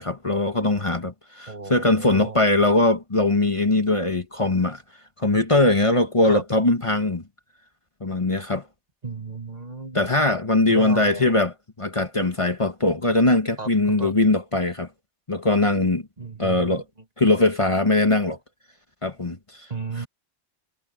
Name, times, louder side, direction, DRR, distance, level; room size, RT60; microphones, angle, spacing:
voice 1, 0.0-4.8 5.2-7.2 8.0-8.6 9.9-14.9 15.3-16.0 16.4-16.8 17.2-18.4 19.0-19.4, left 2 dB, 30° left, 1.4 m, -21 dB
voice 2, 1.5-2.4 6.2-6.4 9.0-10.1 10.7-11.3 13.6-14.1 16.2-16.8 19.7-20.1, right 4 dB, 35° right, 1.5 m, -34 dB
omnidirectional pair, 1.2 m